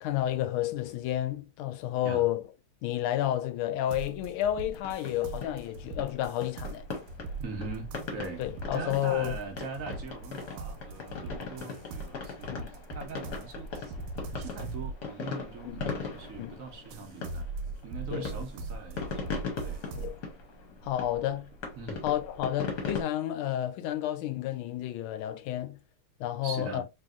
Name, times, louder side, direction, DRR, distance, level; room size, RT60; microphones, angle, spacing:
voice 1, 0.0-2.4 2.8-6.8 8.4-9.4 12.5-12.7 15.6-15.8 16.4-16.6 18.1-18.2 19.9-20.1 20.8-21.5 22.0-25.8 26.2-26.8, left 12 dB, 85° left, 1.4 m, -31 dB
sound 1, 3.9-16.5 16.9-20.2, right 3 dB, 90° right, 1.4 m, -41 dB
sound 2, 4.8-23.0, left 4 dB, 60° left, 1.4 m, -39 dB
voice 2, 7.4-8.4 8.7-13.9 14.3-17.5 17.8-19.8 21.8-22.1 26.4-26.8, right 4 dB, 65° right, 0.8 m, -41 dB
3.3 x 2.7 x 2.4 m
omnidirectional pair, 2.2 m